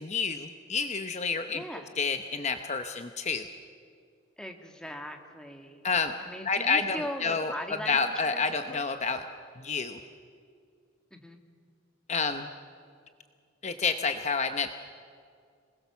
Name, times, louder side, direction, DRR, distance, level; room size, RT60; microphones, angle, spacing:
voice 1, 0.0-1.6 2.0-3.5 5.8-6.1 6.4-7.5 7.9-9.2 9.6-10.0 12.1-12.5 13.6-14.7, left 5 dB, 35° left, 8 dB, 0.8 m, -29 dB
voice 2, 1.5-1.9 4.4-5.9 6.2-8.4 8.7-8.8 11.1-11.4, equal, 5° left, 4 dB, 1.8 m, -39 dB
27.5 x 20.5 x 7.1 m, 2.2 s
head